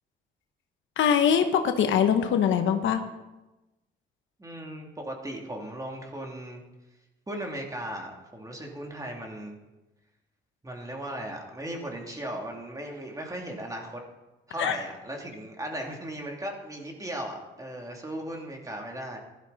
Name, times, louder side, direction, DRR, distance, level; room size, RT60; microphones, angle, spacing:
voice 1, 1.0-3.0 14.6-14.8, left 8 dB, 75° left, 7 dB, 1.2 m, -23 dB
voice 2, 4.4-6.6 7.3-9.6 10.6-14.0 14.5-19.2, right 1 dB, 15° right, 1 dB, 2.8 m, -37 dB
15.5 x 12.0 x 4.1 m, 1.1 s
cardioid pair, 90°, 20 cm